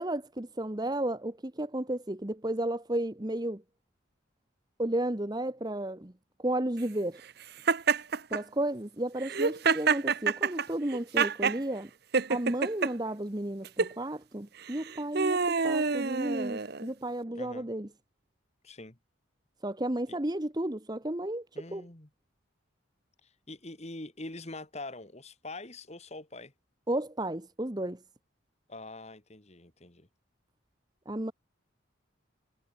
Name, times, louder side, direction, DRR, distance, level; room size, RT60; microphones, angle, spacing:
voice 1, 0.0-3.6 4.8-6.1 6.4-7.2 8.3-11.9 12.3-17.9 19.6-21.4 21.7-21.8 26.9-28.0 31.1-31.3, right 1 dB, 20° right, 1.1 m, -33 dB
Laughter, 7.7-8.4 9.2-11.6 12.1-12.9 13.6-13.9 14.7-16.9, right 5 dB, 50° right, 0.8 m, -27 dB
voice 2, 17.3-17.7 18.6-19.0 20.1-20.2 21.5-22.1 23.2-26.5 28.7-30.1, left 2 dB, 30° left, 1.9 m, -44 dB
head